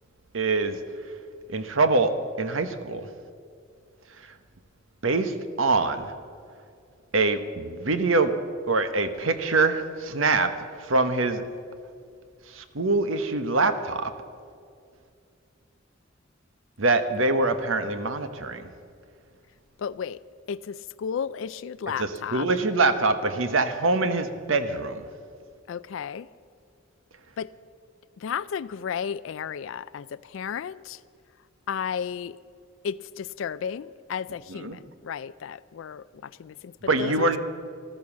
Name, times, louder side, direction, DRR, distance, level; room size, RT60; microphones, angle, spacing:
voice 1, 0.3-0.8 1.5-3.1 5.0-6.1 7.1-8.3 8.7-10.5 10.9-11.4 12.5-14.1 16.8-18.6 22.0-25.0 34.5-34.8 36.9-37.4, right 3 dB, 85° right, 10 dB, 1.1 m, -24 dB
voice 2, 19.8-20.2 20.5-22.5 25.7-26.3 27.4-27.5 28.2-31.0 31.7-32.4 32.8-36.7 37.0-37.3, left 7 dB, 70° left, 15 dB, 0.4 m, -33 dB
14.0 x 13.5 x 7.2 m, 2.3 s
head